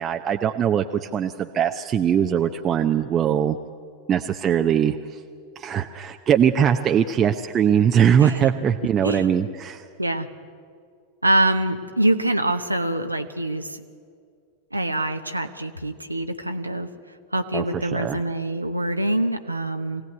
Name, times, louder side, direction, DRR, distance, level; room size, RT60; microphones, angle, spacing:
voice 1, 0.0-3.6 4.1-5.2 5.6-9.8 17.5-18.2, right 8 dB, 25° right, 5 dB, 0.8 m, -21 dB
voice 2, 11.2-13.8 14.7-16.9 17.3-20.0, right 1 dB, 85° right, 6 dB, 0.9 m, -24 dB
23.5 x 17.0 x 9.4 m, 2.2 s
figure-of-eight pair, 90°, 0 cm